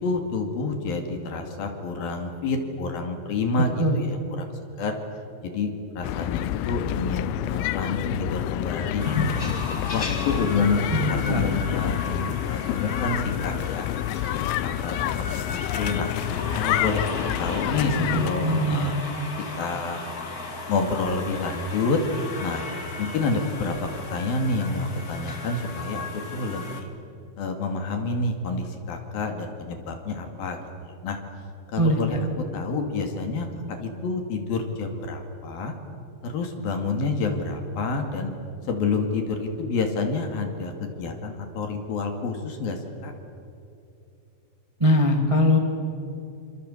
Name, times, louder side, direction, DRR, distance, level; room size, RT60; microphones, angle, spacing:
voice 1, 0.0-4.5 4.8-9.4 9.9-13.9 14.4-16.1 16.5-17.1 17.4-18.9 19.6-20.0 20.7-22.0 22.4-22.7 23.0-26.1 26.3-26.9 27.4-31.2 31.7-32.3 32.5-35.7 36.2-38.3 38.7-43.1, left 3 dB, 60° left, 4 dB, 3.9 m, -28 dB
sound 1, 6.0-18.3, left 14 dB, 85° left, 3.1 m, -28 dB
sound 2, 9.0-26.8, left 3 dB, 30° left, 1.7 m, -35 dB
voice 2, 10.9-11.4 18.0-18.9 31.8-32.2 44.8-45.6, equal, 10° right, 2 dB, 1.6 m, -22 dB
27.5 x 27.0 x 8.0 m, 2.8 s
omnidirectional pair, 5.2 m